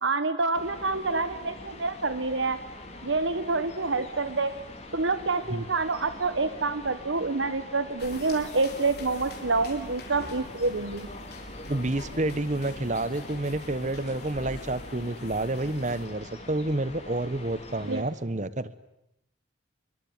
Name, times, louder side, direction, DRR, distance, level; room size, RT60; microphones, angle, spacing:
voice 1, 0.0-2.6 3.0-4.5 4.9-11.1 17.9-18.0, right 3 dB, 85° right, 12 dB, 1.3 m, -27 dB
sound 1, 0.5-18.0, left 2 dB, 35° left, 5.1 m, -44 dB
sound 2, 8.0-16.1, left 2 dB, 55° left, 5.3 m, -44 dB
voice 2, 11.7-18.7, right 2 dB, 40° right, 16 dB, 1.2 m, -29 dB
26.0 x 23.5 x 9.7 m, 0.82 s
head